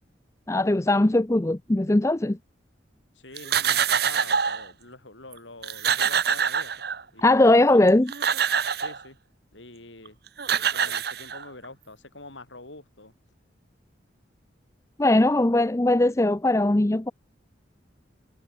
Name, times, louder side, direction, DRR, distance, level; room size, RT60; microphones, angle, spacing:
voice 1, 0.5-2.4 7.2-8.1 15.0-17.1, left 2 dB, 15° left, 0.5 m, -20 dB
voice 2, 3.2-6.8 7.1-7.6 8.7-9.2 9.5-10.2 10.7-13.1, left 2 dB, 75° left, 7.0 m, -45 dB
sound 1, 3.4-4.7 5.3-5.4 5.6-7.2 7.9-9.0 10.1-10.2 10.4-11.6, right 7 dB, 55° right, 1.3 m, -25 dB
head